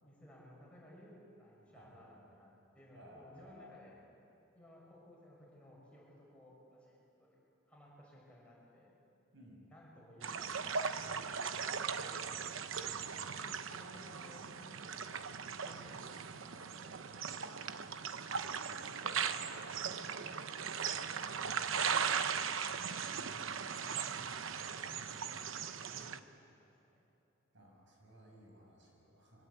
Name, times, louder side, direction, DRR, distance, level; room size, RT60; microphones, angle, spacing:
voice 1, 0.0-4.0 4.5-7.3 7.7-8.9 9.7-10.6 10.9-12.8 13.3-15.2 15.6-17.8 18.4-22.6 23.6-24.2 24.6-26.7, left 1 dB, 5° left, -5 dB, 6.2 m, -59 dB
voice 2, 1.7-2.2 2.9-3.8 9.3-9.6 13.0-14.1 15.8-16.0 18.3-18.9 23.1-24.0 27.5-29.5, equal, 65° right, -1 dB, 6.3 m, -59 dB
sound 1, 10.2-26.2, right 6 dB, 80° right, 0.8 m, -38 dB
23.5 x 20.5 x 8.3 m, 2.7 s
head